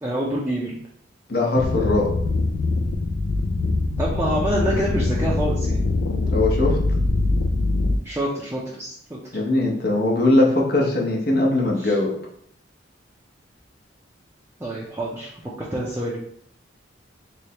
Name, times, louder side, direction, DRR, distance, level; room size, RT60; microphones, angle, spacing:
voice 1, 0.0-0.8 4.0-5.9 8.0-9.2 11.8-12.0 14.6-16.2, right 1 dB, 15° right, -5 dB, 0.4 m, -27 dB
voice 2, 1.3-2.1 6.3-6.8 9.3-12.1, left 2 dB, 55° left, -1 dB, 0.8 m, -20 dB
sound 1, 1.5-8.0, left 2 dB, 75° left, 0.4 m, -23 dB
3.2 x 3.1 x 2.8 m, 0.67 s
head